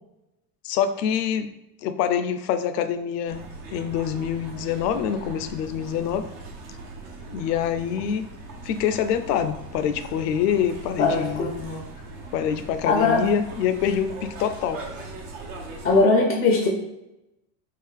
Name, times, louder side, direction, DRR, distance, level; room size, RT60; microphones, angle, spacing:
voice 1, 0.6-1.5 1.8-3.4 3.7-6.3 7.3-8.2 8.6-11.5 12.3-14.8, left 8 dB, 90° left, 10 dB, 0.5 m, -25 dB
sound 1, 3.3-16.0, right 2 dB, 75° right, 1.0 m, -40 dB
voice 2, 11.0-11.8 12.9-13.3 15.8-16.7, left 3 dB, 20° left, 1 dB, 0.3 m, -20 dB
3.8 x 2.5 x 3.2 m, 0.91 s
supercardioid pair, 120°, 47 cm